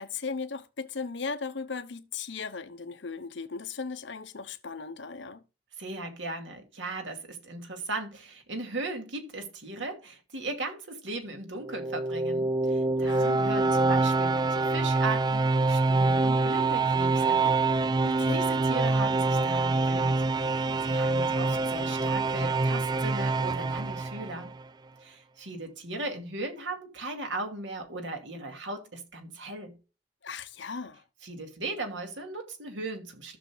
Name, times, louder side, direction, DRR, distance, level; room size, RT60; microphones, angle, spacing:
voice 1, 0.0-5.4 13.0-13.4 18.0-18.4 30.2-31.0, left 4 dB, 70° left, 0.9 m, -37 dB
voice 2, 5.8-17.4 18.3-20.3 20.5-24.5 25.0-29.8 31.2-33.4, right 2 dB, 80° right, 2.3 m, -37 dB
sound 1, 11.6-24.6, right 3 dB, 20° right, 0.3 m, -26 dB
15.0 x 6.6 x 2.3 m
head